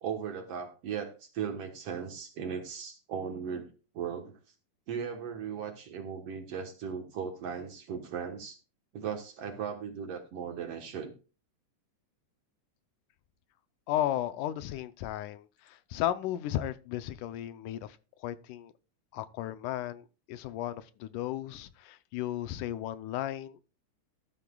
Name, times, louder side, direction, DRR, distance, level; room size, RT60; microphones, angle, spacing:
voice 1, 0.0-3.7 3.9-4.4 4.9-8.6 8.9-11.1, right 7 dB, 60° right, 2.0 m, -37 dB
voice 2, 13.9-18.7 19.1-23.6, left 13 dB, 80° left, 2.2 m, -35 dB
13.0 x 13.0 x 2.3 m
omnidirectional pair, 3.7 m